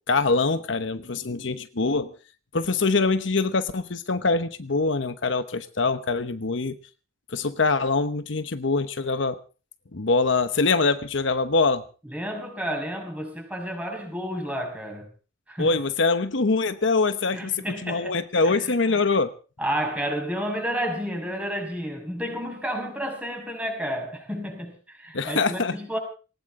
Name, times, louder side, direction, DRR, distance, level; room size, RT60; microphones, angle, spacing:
voice 1, 0.1-2.1 2.5-6.8 7.3-9.4 9.9-11.8 15.6-19.3 25.1-25.7, left 3 dB, 70° left, 10 dB, 1.0 m, -24 dB
voice 2, 12.0-15.1 15.5-15.8 17.3-18.2 18.4-19.0 19.6-26.0, equal, 5° right, 3 dB, 5.9 m, -31 dB
19.0 x 18.5 x 3.7 m, 0.37 s
head